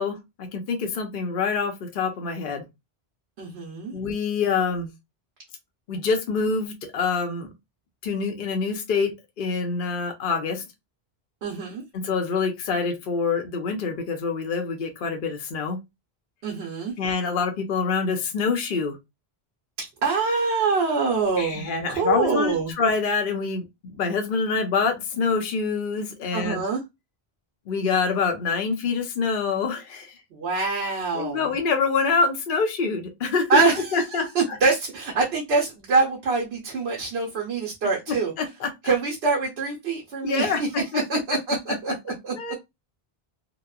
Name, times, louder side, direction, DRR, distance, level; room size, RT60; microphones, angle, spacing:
voice 1, 0.0-2.6 3.9-4.9 5.9-7.5 8.0-10.6 11.9-15.8 17.0-19.0 21.4-26.6 27.7-30.1 31.1-33.6 33.9-34.3 38.4-38.9 40.2-40.6 40.9-41.0 42.3-42.5, left 5 dB, 60° left, 0.8 m, -26 dB
voice 2, 3.4-3.9 11.4-11.8 16.4-16.9 19.8-22.7 26.3-26.8 30.3-31.5 33.5-38.3 38.8-40.7 40.9-42.3, right 4 dB, 85° right, 1.0 m, -25 dB
2.9 x 2.1 x 2.3 m
omnidirectional pair, 1.0 m